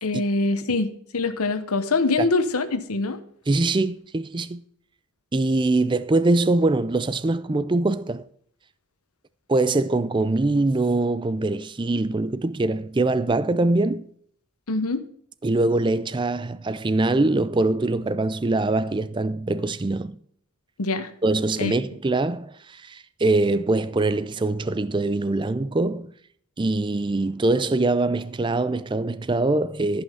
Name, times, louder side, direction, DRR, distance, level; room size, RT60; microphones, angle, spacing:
voice 1, 0.0-3.2 14.7-15.0 20.8-21.1 21.6-21.7, left 3 dB, 85° left, 1.1 m, -24 dB
voice 2, 3.5-4.6 5.3-8.3 9.5-14.1 15.4-20.2 21.2-26.1 26.6-30.0, right 2 dB, 20° right, 0.4 m, -23 dB
14.0 x 5.6 x 5.5 m
head